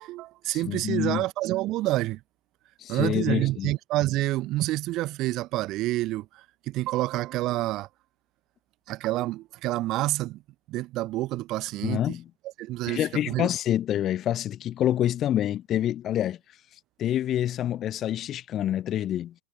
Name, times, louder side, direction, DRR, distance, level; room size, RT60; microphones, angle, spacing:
voice 1, 0.0-2.2 2.9-7.9 8.9-10.4 10.7-12.0 12.6-13.5, right 17 dB, 35° right, 0.8 m, -28 dB
voice 2, 0.5-1.2 2.8-3.7 11.8-12.2 12.9-16.4 17.0-19.3, left 11 dB, 30° left, 0.8 m, -27 dB
figure-of-eight pair, 90°, 0 cm